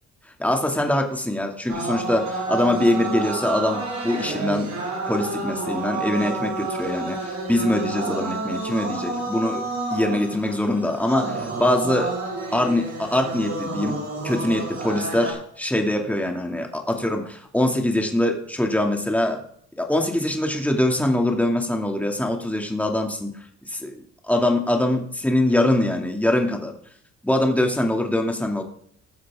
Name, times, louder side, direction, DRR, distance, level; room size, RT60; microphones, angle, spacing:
voice 1, 0.4-4.7 5.1-9.6 9.9-12.1 12.5-14.0 14.2-19.4 19.8-23.3 23.6-26.7 27.2-28.6, left 1 dB, 5° left, 2 dB, 2.5 m, -23 dB
sound 1, 1.7-15.3, right 3 dB, 65° right, 6.4 m, -30 dB
19.0 x 7.4 x 3.7 m, 0.62 s
cardioid pair, 90°, 30 cm